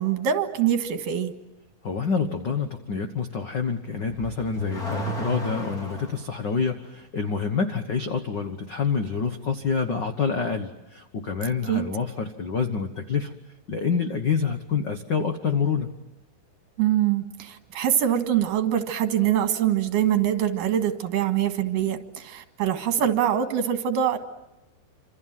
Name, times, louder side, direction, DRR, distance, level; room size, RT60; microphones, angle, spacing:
voice 1, 0.0-1.3 11.7-11.9 16.8-24.2, right 10 dB, 70° right, 7 dB, 3.3 m, -24 dB
voice 2, 1.8-13.3 13.7-15.9, left 5 dB, 85° left, 7 dB, 0.9 m, -27 dB
Car / Accelerating revving vroom, 4.0-6.2, equal, 25° left, 4.2 m, -32 dB
27.0 x 26.5 x 7.6 m, 0.92 s
omnidirectional pair, 4.1 m